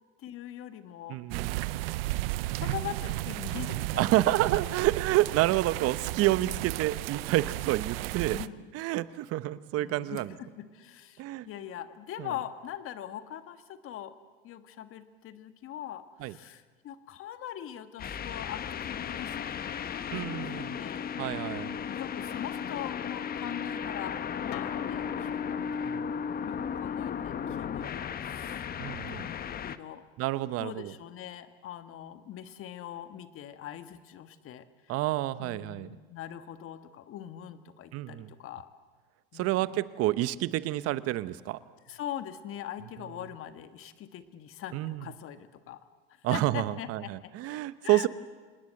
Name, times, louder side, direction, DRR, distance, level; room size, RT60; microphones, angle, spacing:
voice 1, 0.2-1.2 2.4-4.8 6.1-6.3 8.3-8.7 9.8-14.1 14.4-21.0 21.6-28.7 29.1-30.0 30.6-34.9 35.4-38.7 39.3-39.7 41.9-45.8 46.3-48.1, left 11 dB, 45° left, 10 dB, 1.8 m, -42 dB
voice 2, 1.1-1.6 4.0-8.4 8.7-10.3 11.2-11.5 12.2-12.3 16.2-16.3 20.1-20.8 21.2-21.8 25.9-26.0 28.8-29.3 30.2-30.9 34.9-36.0 37.9-38.3 39.3-41.6 44.7-45.0 46.2-48.1, right 16 dB, 50° right, 15 dB, 1.1 m, -29 dB
sound 1, 1.3-8.5, right 18 dB, 75° right, 0.7 m, -34 dB
sound 2, 18.0-29.8, left 7 dB, 30° left, 1.1 m, -35 dB
Acoustic guitar, 24.5-29.7, left 13 dB, 70° left, 1.7 m, -46 dB
27.0 x 20.0 x 7.9 m, 1.4 s
hypercardioid pair, 90°, 30 cm